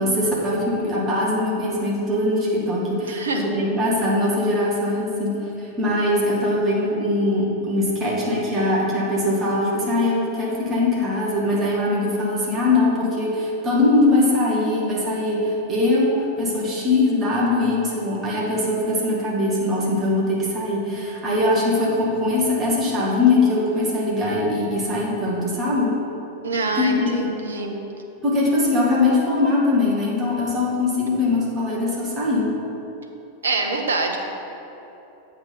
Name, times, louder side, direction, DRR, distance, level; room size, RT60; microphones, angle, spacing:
voice 1, 0.0-26.0 26.8-27.2 28.2-32.5, left 2 dB, 25° right, -5 dB, 1.7 m, -21 dB
voice 2, 3.0-3.4 26.4-27.8 31.1-31.2 33.4-34.2, right 3 dB, 70° right, 3 dB, 0.8 m, -25 dB
7.8 x 4.0 x 5.7 m, 3.0 s
figure-of-eight pair, 90°, 0 cm